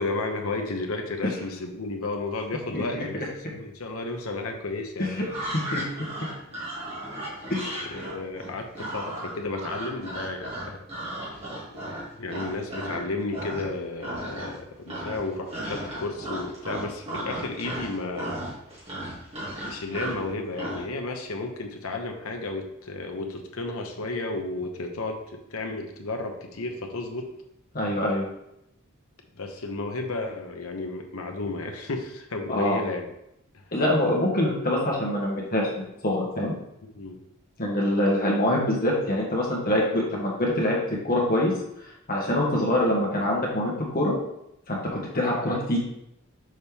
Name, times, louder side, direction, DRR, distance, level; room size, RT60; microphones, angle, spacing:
voice 1, 0.0-5.2 7.8-10.8 11.7-11.8 12.2-18.4 19.7-27.3 29.4-33.0 36.9-37.2, left 2 dB, 75° left, 3 dB, 0.9 m, -33 dB
voice 2, 2.7-3.0 5.0-5.3 5.7-5.8 7.5-8.1 27.7-28.2 32.5-32.8 33.7-35.7 36.0-36.5 37.6-41.5 42.1-44.1 44.7-45.8, left 1 dB, 45° left, -3 dB, 1.7 m, -25 dB
sound 1, 5.2-13.0 13.3-13.7 14.0-14.6 14.9-20.9, right 1 dB, 30° right, 2.1 m, -35 dB
6.4 x 4.2 x 3.6 m, 0.82 s
head